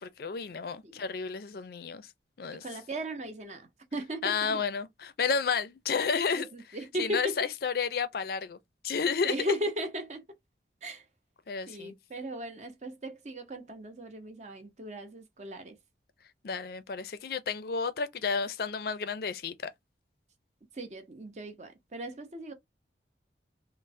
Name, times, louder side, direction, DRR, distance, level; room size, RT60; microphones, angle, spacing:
voice 1, 0.0-2.1 2.4-2.6 4.2-6.5 7.0-8.6 8.8-9.4 11.5-12.0 16.4-19.5, left 5 dB, 55° left, 0.4 m, -31 dB
voice 2, 2.5-4.6 6.3-7.4 9.2-10.2 10.8-11.1 11.7-15.8 20.7-22.5, equal, 40° right, 0.6 m, -37 dB
3.1 x 2.0 x 2.5 m
head